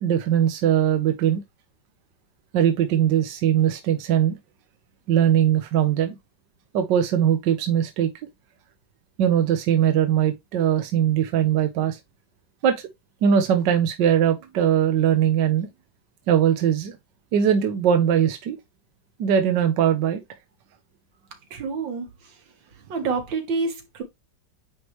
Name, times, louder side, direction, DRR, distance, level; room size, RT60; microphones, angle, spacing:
voice 1, 0.0-1.4 2.5-4.4 5.1-6.2 6.7-8.1 9.2-12.0 12.6-12.8 13.2-15.7 16.3-17.0 17.3-18.6 19.2-20.2, right 9 dB, 75° right, 1.4 m, -20 dB
voice 2, 21.5-22.1 22.9-24.0, right 4 dB, 90° right, 2.1 m, -27 dB
9.5 x 3.2 x 3.1 m
omnidirectional pair, 2.0 m